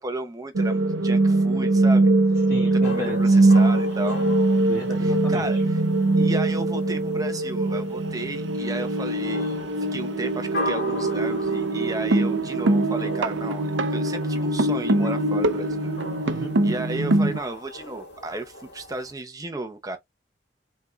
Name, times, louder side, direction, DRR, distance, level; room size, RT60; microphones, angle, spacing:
voice 1, 0.0-2.1 2.9-4.2 5.0-5.6 6.2-9.7 9.9-13.7 13.9-16.0 16.6-20.0, right 2 dB, 20° right, 0.8 m, -34 dB
sound 1, 0.6-17.4, right 2 dB, 90° right, 0.6 m, -22 dB
voice 2, 2.5-3.4 4.6-5.6 16.2-16.6, equal, 15° left, 2.2 m, -35 dB
sound 2, 2.8-19.1, left 1 dB, 65° left, 1.7 m, -39 dB
5.2 x 3.9 x 2.3 m
head